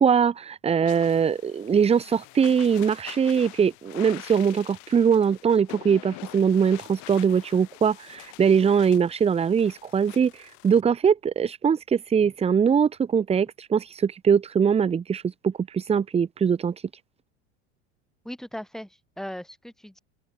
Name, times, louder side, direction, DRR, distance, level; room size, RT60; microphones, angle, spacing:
voice 1, 0.0-16.7, right 7 dB, 20° right, 1.0 m, -22 dB
sound 1, 0.8-10.8, left 28 dB, 60° left, 4.5 m, -46 dB
voice 2, 18.2-20.0, equal, ahead, 4.0 m, -38 dB
open air
supercardioid pair, 130°, 33 cm